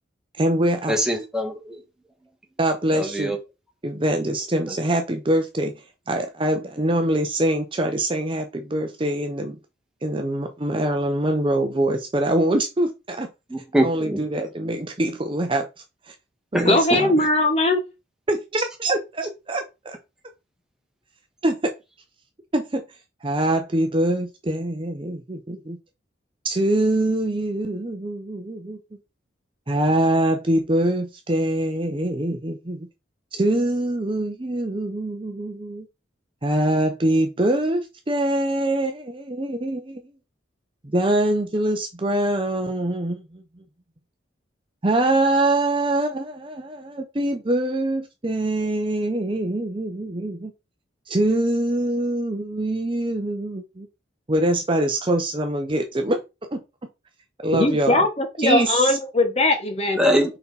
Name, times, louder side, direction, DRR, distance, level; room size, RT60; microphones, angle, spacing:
voice 1, 0.4-1.0 2.6-3.4 3.8-5.7 6.1-9.6 10.0-13.3 13.8-15.7 16.1-16.2 16.5-17.1 18.3-20.0 21.4-21.6 22.5-22.8 23.2-25.8 26.4-28.8 29.7-32.9 33.3-35.9 36.4-40.1 40.8-43.4 44.8-50.5 51.1-53.9 54.3-56.2 56.5-56.6 57.4-58.1 58.4-59.0, right 1 dB, 25° right, 0.7 m, -24 dB
voice 2, 0.9-1.8 2.9-3.4 13.5-14.2 16.5-16.7 60.0-60.4, equal, 5° right, 1.5 m, -23 dB
voice 3, 16.6-17.8 57.5-60.0, left 2 dB, 30° left, 1.1 m, -20 dB
5.4 x 4.3 x 4.1 m
head